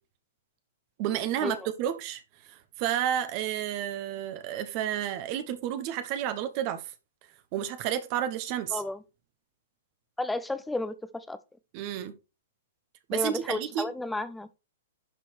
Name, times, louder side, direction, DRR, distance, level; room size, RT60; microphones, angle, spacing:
voice 1, 1.0-6.9 7.5-8.8 11.7-12.2 13.1-13.9, right 10 dB, 35° right, 1.1 m, -31 dB
voice 2, 10.2-11.4 13.1-14.5, left 2 dB, 5° left, 0.8 m, -32 dB
11.0 x 4.5 x 4.5 m
figure-of-eight pair, 110°, 0 cm